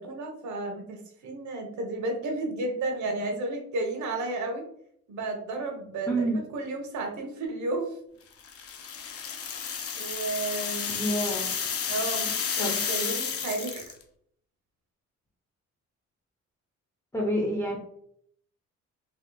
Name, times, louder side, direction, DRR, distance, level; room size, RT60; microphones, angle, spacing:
voice 1, 0.0-4.6 5.1-8.0 9.9-11.1 11.9-13.9, right 2 dB, 70° right, 3 dB, 0.9 m, -32 dB
voice 2, 6.1-6.4 10.9-11.5 12.6-12.8 17.1-17.8, right 1 dB, 10° left, -2 dB, 0.6 m, -28 dB
sound 1, 8.4-14.0, left 7 dB, 50° left, 0.6 m, -31 dB
3.2 x 2.9 x 2.2 m, 0.67 s
cardioid pair, 90°, 30 cm